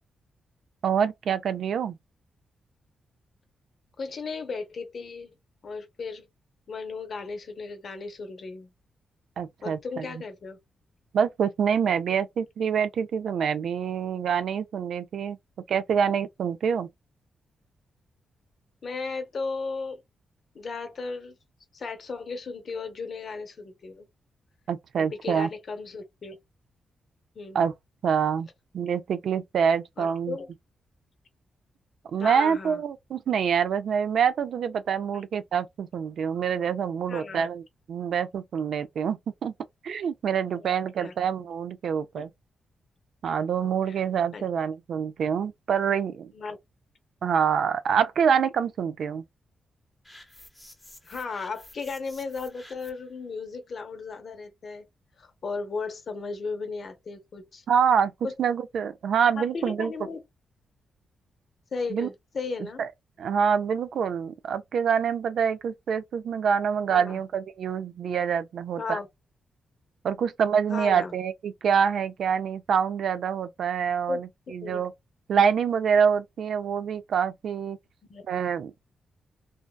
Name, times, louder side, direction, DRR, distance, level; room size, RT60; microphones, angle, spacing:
voice 1, 0.8-2.0 9.4-10.1 11.1-15.4 15.7-16.9 24.7-25.5 27.5-27.7 28.0-28.5 28.7-30.4 32.1-39.5 39.8-42.3 43.2-46.3 47.2-49.2 57.7-59.9 61.9-62.1 62.8-62.9 63.2-69.0 70.0-74.9 75.3-77.8 78.3-78.7, right 7 dB, 70° right, 0.4 m, -26 dB
voice 2, 4.0-5.3 5.6-6.3 6.7-8.7 9.6-10.6 18.8-20.0 20.5-21.3 21.7-24.1 25.0-26.4 27.4-27.6 30.0-30.5 32.2-32.8 37.1-37.5 40.6-40.8 41.0-41.1 42.1-42.2 43.9-44.0 44.3-44.4 46.3-46.6 51.0-54.9 55.2-57.6 58.2-58.3 59.4-60.2 61.7-62.9 66.9-67.2 68.8-69.1 70.7-71.1 74.1-74.2 74.6-74.8 78.1-78.4, left 4 dB, 55° left, 0.8 m, -35 dB
sound 1, 50.0-53.1, left 1 dB, 5° left, 1.0 m, -51 dB
2.6 x 2.2 x 2.2 m
cardioid pair, 90°, 0 cm